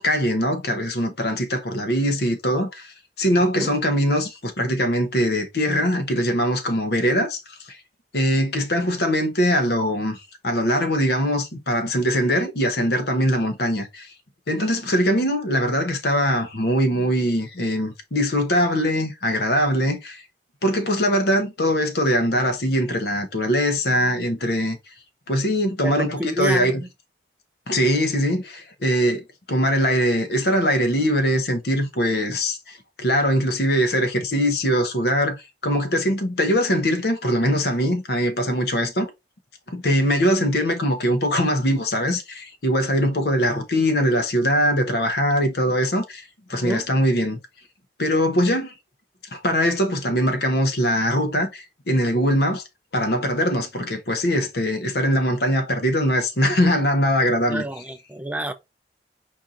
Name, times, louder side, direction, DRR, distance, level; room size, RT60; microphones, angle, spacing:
voice 1, 0.0-7.8 8.1-10.2 10.4-14.1 14.5-20.2 20.6-24.8 25.3-26.8 27.7-39.1 39.7-46.2 46.5-47.4 48.0-48.7 49.3-52.6 52.9-57.6, equal, 60° left, 1.0 m, -22 dB
voice 2, 3.4-3.7 25.8-26.9 46.5-46.8 57.5-58.5, right 1 dB, 10° right, 0.5 m, -29 dB
4.6 x 2.8 x 3.7 m
head